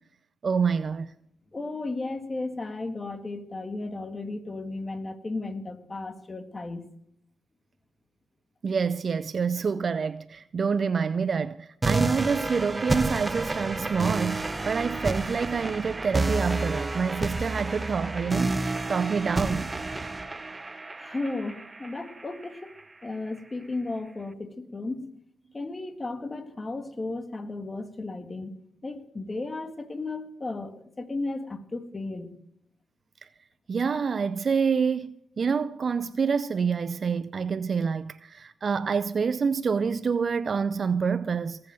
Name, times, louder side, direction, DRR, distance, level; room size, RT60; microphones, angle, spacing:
voice 1, 0.4-1.1 8.6-19.7 33.7-41.6, right 5 dB, 50° right, 0.5 m, -27 dB
voice 2, 1.5-6.9 21.0-22.7 23.0-25.1 25.5-28.5 28.8-32.3, left 2 dB, 30° left, 1.9 m, -34 dB
sound 1, 11.8-22.8, right 2 dB, 25° right, 1.0 m, -30 dB
19.0 x 7.7 x 7.6 m
supercardioid pair, 55°, 0 cm